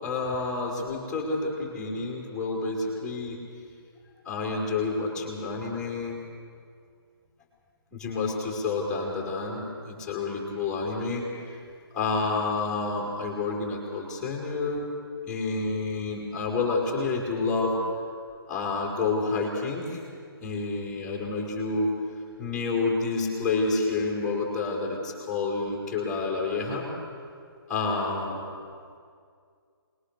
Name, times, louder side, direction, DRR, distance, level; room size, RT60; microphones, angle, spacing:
voice 1, 0.0-3.4 4.2-6.2 7.9-11.2 11.9-14.8 15.3-17.8 18.5-20.0 20.4-21.9 22.4-26.9 27.7-28.5, left 3 dB, 5° left, -3 dB, 4.4 m, -29 dB
25.5 x 21.5 x 6.7 m, 2.3 s
hypercardioid pair, 160°, 13 cm